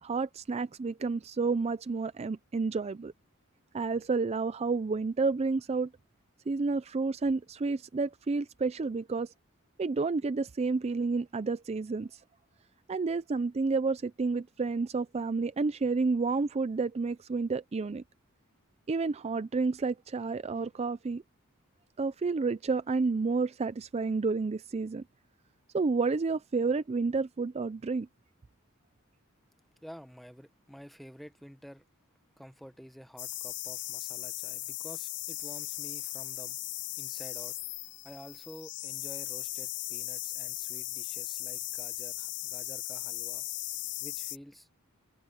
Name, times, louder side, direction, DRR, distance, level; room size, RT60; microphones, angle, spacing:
voice 1, 0.0-3.1 3.7-5.9 6.5-9.3 9.8-12.2 12.9-18.0 18.9-21.2 22.0-25.0 25.7-28.1, right 4 dB, 30° right, 0.4 m, -30 dB
voice 2, 29.8-31.8 32.4-36.6 37.0-37.6 38.0-43.5 44.0-44.7, equal, ahead, 1.1 m, -50 dB
sound 1, 33.2-44.4, left 17 dB, 60° left, 0.5 m, -38 dB
head